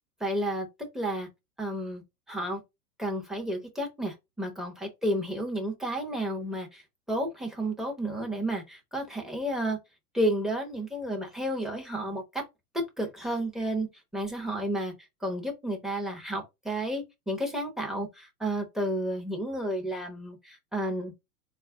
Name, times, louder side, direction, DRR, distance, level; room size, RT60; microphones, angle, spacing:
voice 1, 0.2-0.7 0.9-1.3 1.6-2.0 2.3-2.6 3.0-6.8 7.1-9.8 10.1-12.4 12.7-13.9 14.1-14.9 15.2-21.1, right 1 dB, ahead, 0.6 m, -31 dB
3.8 x 2.4 x 3.5 m
hypercardioid pair, 120°, 47 cm